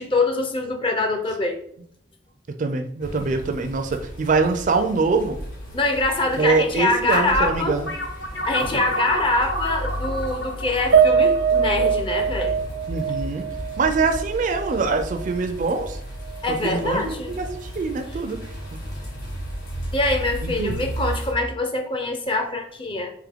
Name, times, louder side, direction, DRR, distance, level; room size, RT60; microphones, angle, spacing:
voice 1, 0.0-1.6 5.7-7.8 8.4-12.5 16.4-17.3 19.9-23.1, left 2 dB, 30° left, 4 dB, 0.5 m, -24 dB
voice 2, 2.5-5.4 6.4-7.9 12.9-13.5 13.8-16.0 16.5-18.4 20.4-20.7, right 4 dB, 45° right, 7 dB, 0.4 m, -24 dB
sound 1, 3.0-21.3, equal, 50° left, 1.7 m, -34 dB
sound 2, 7.9-12.7, equal, 70° left, 0.6 m, -31 dB
Piano, 10.9-15.4 15.8-15.9 16.3-16.4, right 6 dB, 85° right, 0.6 m, -22 dB
3.6 x 3.1 x 3.5 m, 0.67 s
head